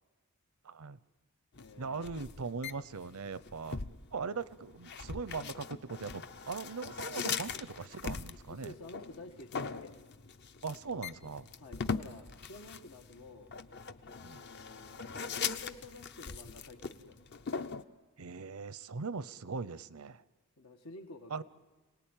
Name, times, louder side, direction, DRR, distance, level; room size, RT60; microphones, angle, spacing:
voice 1, 0.6-1.0 1.8-3.8 4.1-8.7 10.6-11.5 14.2-14.4 18.2-20.2 21.3-21.4, right 4 dB, 80° right, 16 dB, 0.7 m, -40 dB
sound 1, 1.5-17.8, left 5 dB, 50° left, 0.7 m, -41 dB
voice 2, 1.6-2.2 7.6-7.7 8.5-9.9 11.6-13.5 14.1-17.2 20.6-21.4, left 2 dB, 85° left, 2 dB, 1.5 m, -51 dB
27.5 x 19.0 x 9.0 m, 1.3 s
head